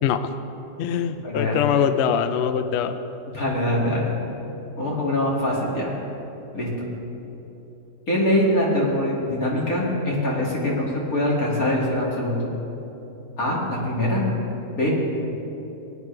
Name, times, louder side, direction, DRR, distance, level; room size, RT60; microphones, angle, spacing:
voice 1, 0.0-0.3 0.8-3.0, left 8 dB, 85° left, 10 dB, 0.5 m, -23 dB
voice 2, 1.2-1.6 3.3-4.1 4.8-5.9 6.5-6.9 8.1-12.5 13.4-14.2 14.7-14.9, left 1 dB, 55° left, -4 dB, 2.8 m, -23 dB
20.0 x 9.6 x 3.4 m, 3.0 s
omnidirectional pair, 1.8 m